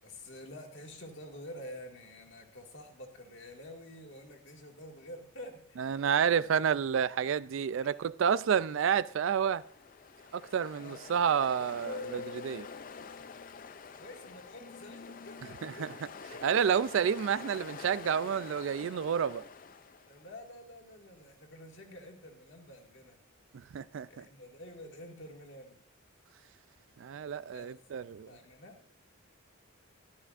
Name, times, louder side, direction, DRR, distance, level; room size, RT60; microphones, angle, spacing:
voice 1, 0.0-6.0 7.8-8.0 10.7-11.0 13.8-15.9 16.3-16.7 17.3-17.6 20.1-23.2 24.1-25.8 27.5-27.8 28.3-28.8, left 1 dB, 60° left, 1.9 m, -49 dB
voice 2, 5.8-9.6 10.3-12.7 15.6-15.9 16.4-19.4 23.7-24.2 27.0-28.3, right 7 dB, 65° right, 0.3 m, -29 dB
Ocean, 9.4-20.4, left 5 dB, 40° left, 0.4 m, -46 dB
13.5 x 12.0 x 2.5 m
head